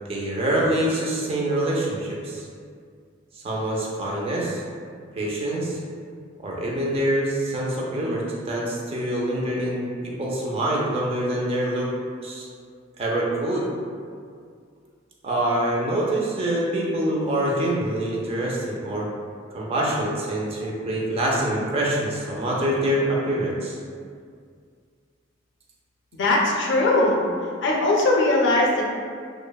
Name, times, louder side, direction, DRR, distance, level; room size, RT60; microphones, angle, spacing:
voice 1, 0.1-2.4 3.3-4.6 5.1-5.8 6.4-11.9 12.2-12.5 13.0-13.7 15.2-19.1 19.5-23.8, right 1 dB, 30° right, -4 dB, 0.4 m, -25 dB
voice 2, 26.1-27.2 27.6-28.8, left 2 dB, 65° left, -2 dB, 0.4 m, -20 dB
3.1 x 2.0 x 2.2 m, 2.1 s
head